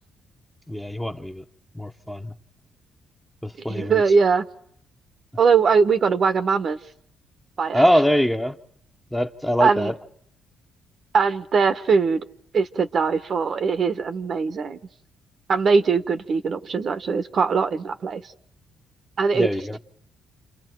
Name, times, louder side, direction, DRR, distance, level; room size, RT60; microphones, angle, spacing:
voice 1, 0.7-1.4 1.7-2.3 3.4-4.0 7.7-8.6 9.1-10.0 19.3-19.8, equal, 5° left, 1.0 m, -23 dB
voice 2, 3.7-4.5 5.4-6.8 7.6-7.8 9.6-9.9 11.1-12.2 12.5-14.8 15.5-18.2 19.2-19.5, right 5 dB, 50° right, 1.0 m, -21 dB
28.5 x 28.5 x 4.6 m
cardioid pair, 90°, 0 cm